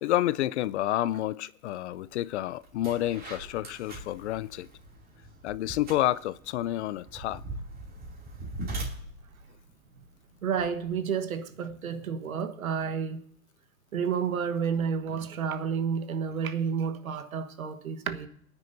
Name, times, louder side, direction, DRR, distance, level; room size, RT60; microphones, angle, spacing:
voice 1, 0.0-4.7 5.4-7.4, left 14 dB, 55° left, 0.5 m, -29 dB
sound 1, 2.1-2.3 2.6-10.9, right 2 dB, 20° right, 2.8 m, -41 dB
voice 2, 10.4-13.2 13.9-18.3, right 6 dB, 85° right, 1.4 m, -30 dB
22.0 x 9.6 x 2.7 m
hypercardioid pair, 125°, 41 cm